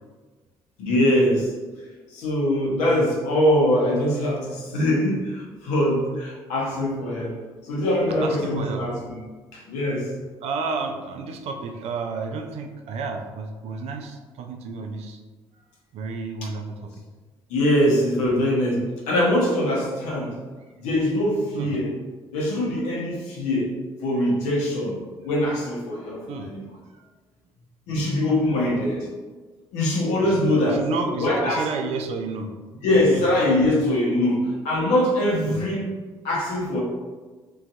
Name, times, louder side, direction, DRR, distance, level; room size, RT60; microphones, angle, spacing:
voice 1, 0.8-1.5 2.1-7.4 7.6-9.2 9.5-10.1 17.5-20.4 20.8-21.9 22.3-25.0 25.2-26.6 27.9-29.1 29.7-30.9 31.2-31.9 32.8-36.0 36.2-36.8, left 1 dB, 65° left, -3 dB, 0.6 m, -23 dB
voice 2, 8.1-8.8 10.4-15.2 15.9-16.9 21.5-21.7 26.3-26.5 30.3-32.5 33.1-33.3 35.4-35.6, right 4 dB, 55° right, 5 dB, 0.4 m, -31 dB
2.5 x 2.3 x 2.3 m, 1.3 s
figure-of-eight pair, 45°, 13 cm